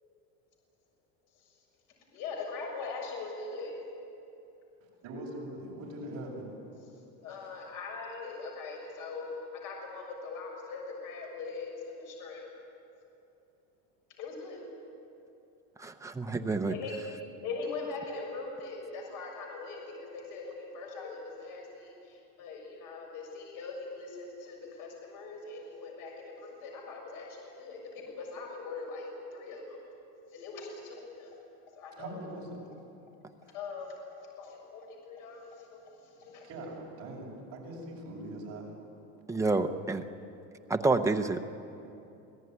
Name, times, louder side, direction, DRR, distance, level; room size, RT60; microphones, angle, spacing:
voice 1, 2.1-3.8 7.2-9.3 9.5-12.5 14.2-14.6 16.7-16.9 17.4-29.8 30.3-31.3 31.8-32.2 33.5-33.9 34.4-36.5, left 4 dB, 55° left, 0 dB, 6.7 m, -41 dB
voice 2, 5.0-6.6 32.0-32.6 36.4-38.7, right 1 dB, 40° right, -2 dB, 6.8 m, -41 dB
voice 3, 15.8-16.8 39.3-40.0 40.7-41.4, right 3 dB, 10° right, 6 dB, 0.6 m, -28 dB
26.5 x 17.5 x 9.5 m, 2.7 s
cardioid pair, 165°, 38 cm